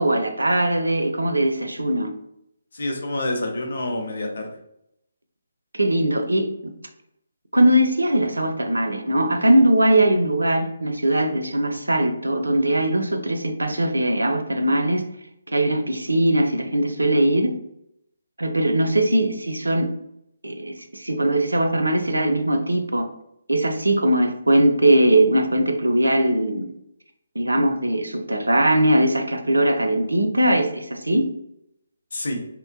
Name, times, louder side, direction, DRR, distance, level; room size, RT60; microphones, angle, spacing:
voice 1, 0.0-2.1 5.7-6.7 7.5-15.0 15.5-17.5 18.4-19.9 20.4-23.1 23.5-26.7 27.4-31.3, right 1 dB, 75° right, 6 dB, 0.4 m, -20 dB
voice 2, 2.7-4.6 32.1-32.4, left 1 dB, 55° left, 3 dB, 0.5 m, -27 dB
2.8 x 2.1 x 2.4 m, 0.78 s
figure-of-eight pair, 140°, 0 cm